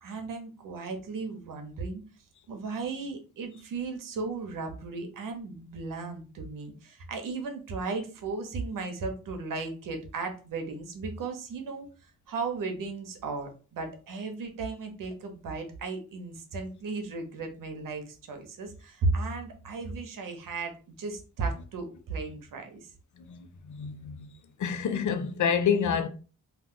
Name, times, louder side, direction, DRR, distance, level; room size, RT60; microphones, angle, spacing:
voice 1, 0.0-2.0 2.5-11.9 12.3-22.9, right 3 dB, 75° right, 0.9 m, -35 dB
voice 2, 23.2-24.3 24.6-26.1, left 7 dB, 65° left, 0.6 m, -28 dB
2.5 x 2.3 x 3.6 m
cardioid pair, 75°, 33 cm